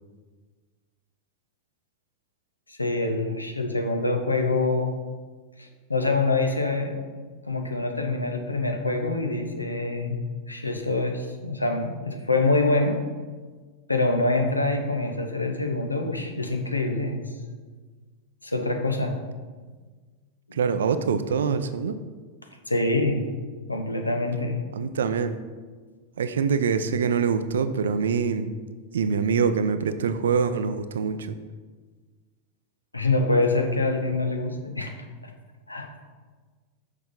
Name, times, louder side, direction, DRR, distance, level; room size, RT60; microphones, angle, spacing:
voice 1, 2.7-4.9 5.6-7.0 7.5-13.0 13.9-17.2 18.4-19.2 22.7-23.2 23.7-24.6 32.9-34.9 35.7-35.9, left 2 dB, 85° left, 4 dB, 0.9 m, -25 dB
voice 2, 20.5-22.0 24.7-25.4 26.2-28.5 28.9-31.4, right 6 dB, 65° right, 11 dB, 0.5 m, -24 dB
6.5 x 5.6 x 5.2 m, 1.4 s
figure-of-eight pair, 90°, 0 cm